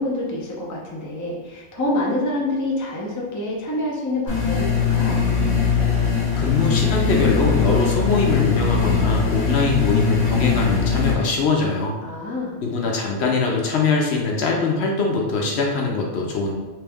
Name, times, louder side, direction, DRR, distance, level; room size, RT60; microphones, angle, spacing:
voice 1, 0.0-5.2 12.0-12.6, left 1 dB, 20° left, -3 dB, 0.5 m, -27 dB
sound 1, 4.3-11.1, left 6 dB, 40° left, 1.1 m, -20 dB
voice 2, 6.4-12.0 12.6-16.5, left 3 dB, 65° left, -1 dB, 0.8 m, -22 dB
3.3 x 3.0 x 3.4 m, 1.2 s
omnidirectional pair, 1.3 m